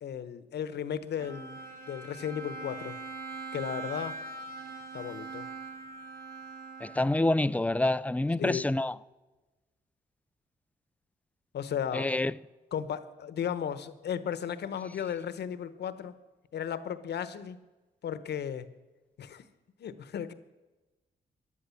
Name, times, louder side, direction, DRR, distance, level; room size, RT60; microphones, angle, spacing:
voice 1, 0.0-1.6 1.9-3.0 3.5-4.2 4.9-5.5 8.4-8.7 11.5-12.1 12.7-16.1 16.5-17.6 18.0-18.7 19.2-19.4 19.8-20.3, left 8 dB, 70° left, 1.0 m, -35 dB
Bowed string instrument, 1.2-7.6, right 3 dB, 55° right, 2.4 m, -42 dB
voice 2, 6.8-8.9 11.9-12.3, left 2 dB, 10° left, 0.4 m, -27 dB
14.0 x 11.0 x 7.1 m
cardioid pair, 75°, 18 cm